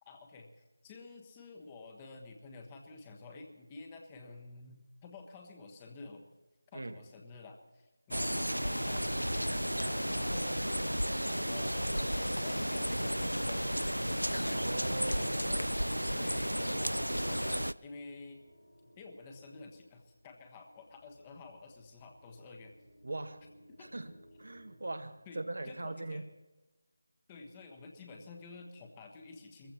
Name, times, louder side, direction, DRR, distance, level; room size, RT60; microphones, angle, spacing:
voice 1, 0.0-6.3 6.7-10.6 11.3-15.8 16.1-18.4 19.0-22.7 23.8-23.9 25.3-25.4 25.6-26.2 27.3-29.7, left 3 dB, 15° left, 3 dB, 1.3 m, -51 dB
sound 1, 8.1-17.7, equal, 85° right, 0.5 m, -33 dB
sound 2, 12.1-25.7, equal, 90° left, 5.6 m, -61 dB
voice 2, 14.5-15.4 23.0-23.5 23.8-26.2, right 2 dB, 55° right, 9 dB, 1.1 m, -40 dB
21.5 x 15.0 x 4.3 m, 1.1 s
figure-of-eight pair, 160°, 0 cm